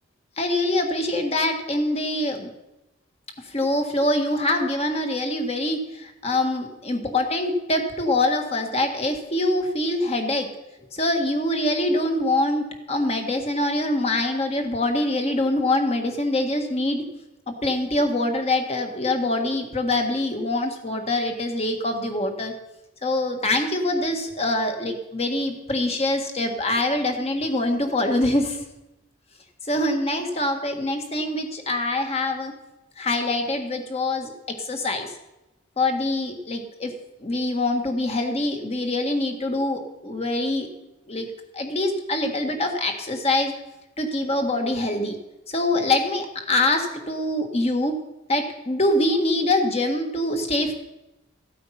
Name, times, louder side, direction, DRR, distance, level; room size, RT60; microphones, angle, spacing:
voice 1, 0.4-2.5 3.4-10.5 10.9-17.0 17.6-22.5 23.0-28.6 29.7-32.5 33.0-34.3 34.6-35.1 35.8-36.9 37.2-40.7 41.1-41.3 41.5-43.5 44.0-45.2 45.5-47.9 48.3-50.7, left 1 dB, 35° left, 5 dB, 1.7 m, -24 dB
15.0 x 8.4 x 5.8 m, 0.97 s
head